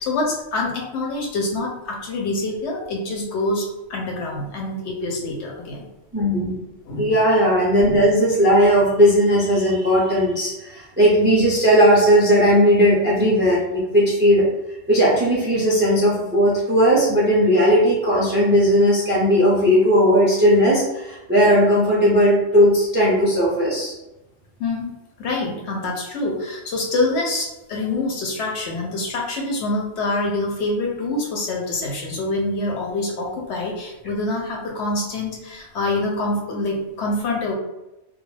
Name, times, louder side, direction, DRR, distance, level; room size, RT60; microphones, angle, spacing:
voice 1, 0.0-5.9 6.9-7.1 24.6-24.9 25.2-37.5, left 2 dB, 70° left, -1 dB, 0.8 m, -26 dB
voice 2, 6.1-6.6 6.9-14.4 14.9-23.9, equal, 15° right, -6 dB, 0.4 m, -17 dB
2.3 x 2.0 x 3.1 m, 0.95 s
omnidirectional pair, 1.3 m